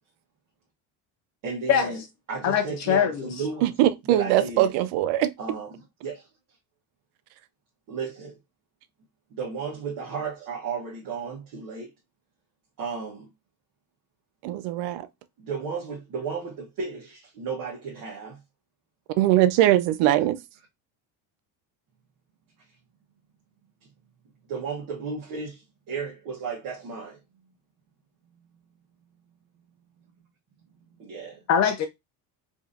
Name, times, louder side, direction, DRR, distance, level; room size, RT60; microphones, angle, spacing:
voice 1, 1.4-2.0 2.3-3.8 4.0-4.7 5.4-6.2 7.9-8.3 9.3-11.9 12.8-13.3 15.4-18.4 24.5-25.6 25.9-27.2 30.9-31.4, right 5 dB, 50° right, 1.2 m, -34 dB
voice 2, 2.4-3.3 31.5-31.9, left 8 dB, 45° left, 0.5 m, -22 dB
voice 3, 3.6-5.3 14.4-15.0 19.2-20.4, right 13 dB, 75° right, 0.6 m, -21 dB
4.8 x 2.7 x 2.5 m
cardioid pair, 155°, 40 cm